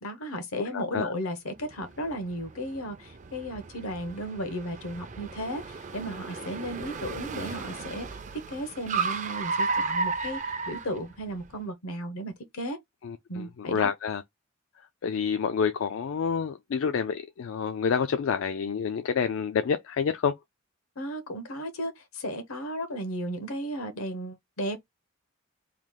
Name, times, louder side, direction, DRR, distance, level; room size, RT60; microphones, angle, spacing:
voice 1, 0.0-8.1 8.5-12.8 13.3-13.9 21.0-24.8, equal, 80° left, 1.0 m, -35 dB
voice 2, 0.6-1.1 13.0-14.2 15.0-20.4, left 6 dB, 65° left, 0.3 m, -28 dB
Car, 1.6-11.5, right 4 dB, 35° right, 0.4 m, -34 dB
3.1 x 2.4 x 3.6 m
head